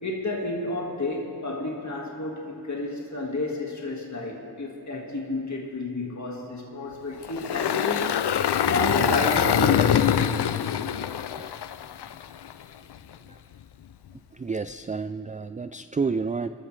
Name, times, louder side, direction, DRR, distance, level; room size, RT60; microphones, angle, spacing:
voice 1, 0.0-8.1 8.7-10.3, left 2 dB, 45° left, -1 dB, 1.9 m, -30 dB
Engine, 7.2-12.5, left 9 dB, 80° left, 0.5 m, -24 dB
voice 2, 14.3-16.5, right 4 dB, 20° right, 11 dB, 0.3 m, -30 dB
25.5 x 13.5 x 3.3 m, 2.5 s
cardioid pair, 45°, 40 cm